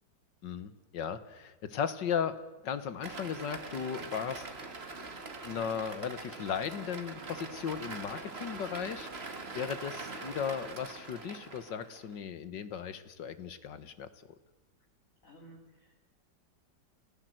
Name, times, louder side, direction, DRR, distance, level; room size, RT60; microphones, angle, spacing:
voice 1, 0.4-4.5 5.4-14.1, left 7 dB, 75° left, 12 dB, 1.9 m, -36 dB
sound 1, 3.0-12.1, right 3 dB, 35° right, 2.0 m, -43 dB
voice 2, 15.2-16.0, right 1 dB, 45° left, 0 dB, 2.7 m, -55 dB
29.0 x 16.5 x 7.9 m, 1.1 s
omnidirectional pair, 2.0 m